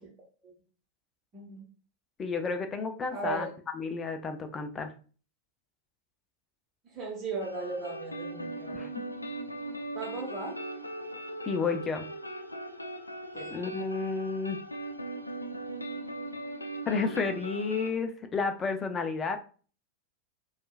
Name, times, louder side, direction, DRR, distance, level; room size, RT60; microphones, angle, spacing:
voice 1, 1.3-1.6 3.1-3.5 6.9-8.9 9.9-10.5 13.3-13.5, right 4 dB, 30° right, -4 dB, 1.0 m, -37 dB
voice 2, 2.2-3.5 3.7-4.9 8.7-8.9 11.4-12.0 13.5-14.6 16.9-19.4, left 4 dB, 20° left, 7 dB, 0.5 m, -31 dB
sound 1, 7.4-17.9, right 1 dB, 85° left, 0.3 m, -39 dB
4.4 x 2.4 x 2.3 m, 0.39 s
figure-of-eight pair, 90°, 0 cm